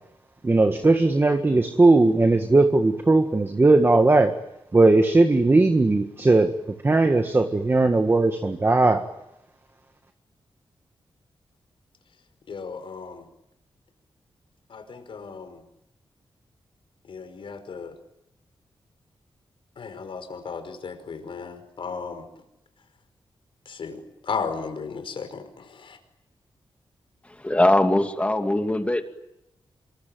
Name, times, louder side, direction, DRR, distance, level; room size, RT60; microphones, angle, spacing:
voice 1, 0.4-4.3 4.7-6.5 6.8-9.0, right 2 dB, 25° right, 6 dB, 1.7 m, -18 dB
voice 2, 12.5-13.2 14.7-15.6 17.1-17.9 19.8-22.2 23.6-26.0, left 5 dB, 70° left, 8 dB, 5.3 m, -35 dB
voice 3, 27.2-29.0, left 1 dB, 15° left, 5 dB, 2.5 m, -21 dB
27.5 x 23.5 x 9.1 m, 0.86 s
wide cardioid pair, 135°, 9 cm